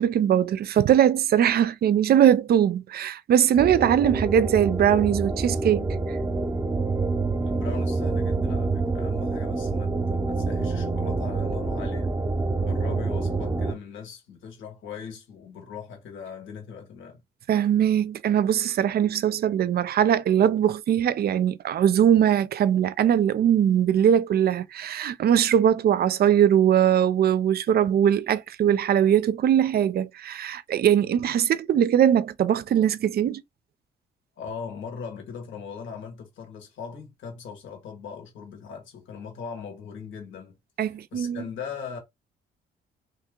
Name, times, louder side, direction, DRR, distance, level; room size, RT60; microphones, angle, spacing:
voice 1, 0.0-6.2 17.5-33.4 40.8-41.4, right 9 dB, 50° right, 0.4 m, -21 dB
sound 1, 3.6-13.7, right 3 dB, 15° right, 0.7 m, -27 dB
voice 2, 7.4-12.1 12.6-17.2 34.4-40.5 40.8-42.0, left 6 dB, 75° left, 1.6 m, -39 dB
3.0 x 2.8 x 3.6 m
cardioid pair, 90°, 20 cm